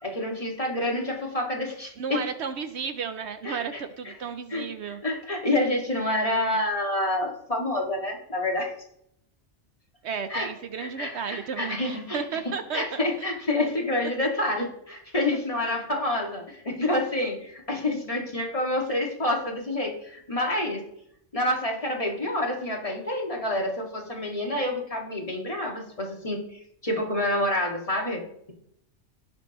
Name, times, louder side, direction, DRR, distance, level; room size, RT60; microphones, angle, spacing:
voice 1, 0.0-2.2 3.4-3.6 4.5-8.7 10.3-10.5 10.8-12.2 12.7-20.8 21.3-26.4 26.8-28.2, left 1 dB, 30° left, -1 dB, 2.2 m, -28 dB
voice 2, 2.0-5.0 10.0-13.0, right 6 dB, 70° right, 10 dB, 0.9 m, -33 dB
17.5 x 6.9 x 3.0 m, 0.73 s
omnidirectional pair, 1.2 m